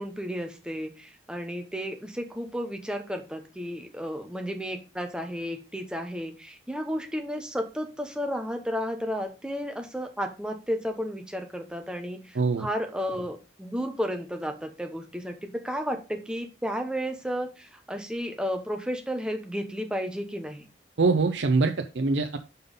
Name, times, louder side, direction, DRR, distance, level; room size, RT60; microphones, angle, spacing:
voice 1, 0.0-20.7, equal, 5° right, 4 dB, 1.0 m, -33 dB
voice 2, 12.4-12.7 21.0-22.4, right 3 dB, 80° right, 6 dB, 0.6 m, -23 dB
5.5 x 5.5 x 5.3 m, 0.31 s
head